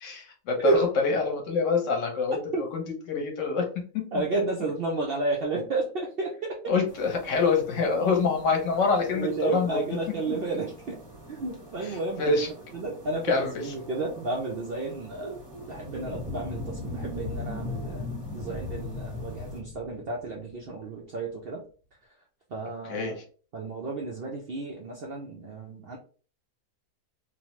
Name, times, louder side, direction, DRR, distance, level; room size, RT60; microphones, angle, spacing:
voice 1, 0.0-2.8 3.1-3.7 3.9-4.1 6.7-10.0 12.2-12.5 13.3-13.7 22.9-23.1, left 4 dB, 60° left, 2 dB, 1.0 m, -26 dB
voice 2, 4.1-6.7 9.1-11.0 11.3-12.4 12.7-15.4 15.7-21.6 22.5-23.2 23.5-26.0, right 3 dB, 90° right, -1 dB, 0.5 m, -32 dB
sound 1, 6.9-19.6, right 2 dB, 30° right, 0.5 m, -48 dB
sound 2, 15.5-20.5, left 3 dB, 25° left, 0.9 m, -36 dB
2.9 x 2.0 x 2.9 m, 0.40 s
omnidirectional pair, 1.6 m